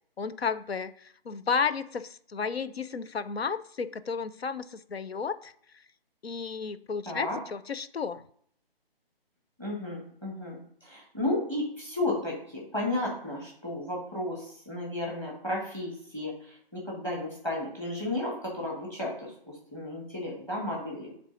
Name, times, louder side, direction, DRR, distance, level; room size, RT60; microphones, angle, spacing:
voice 1, 0.2-5.5 6.2-8.2, left 5 dB, 80° left, 13 dB, 0.6 m, -32 dB
voice 2, 7.1-7.4 9.6-21.1, left 1 dB, 10° left, -2 dB, 1.4 m, -33 dB
8.0 x 3.4 x 3.9 m, 0.63 s
figure-of-eight pair, 145°, 30 cm